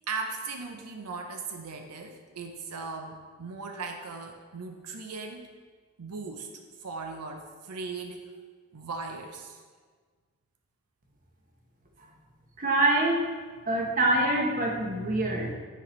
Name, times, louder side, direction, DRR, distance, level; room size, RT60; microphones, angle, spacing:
voice 1, 0.1-5.5 6.0-6.5 6.8-8.3 8.7-9.6, right 4 dB, 85° right, 4 dB, 0.6 m, -38 dB
voice 2, 12.6-13.2 13.7-15.5, right 2 dB, 40° right, 1 dB, 0.9 m, -25 dB
10.0 x 4.2 x 3.1 m, 1.5 s
head